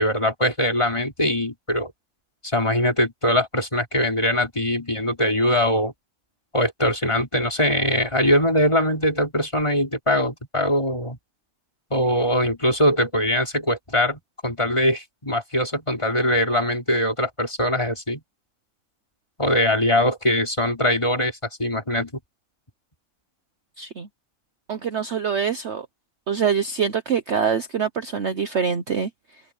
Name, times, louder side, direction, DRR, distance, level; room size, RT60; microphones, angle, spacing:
voice 1, 0.0-1.9 2.4-5.9 6.5-11.2 11.9-18.2 19.4-22.1, equal, 15° left, 3.9 m, -22 dB
voice 2, 23.8-24.1 24.7-25.9 26.3-29.4, right 6 dB, 55° right, 0.8 m, -25 dB
omnidirectional pair, 2.4 m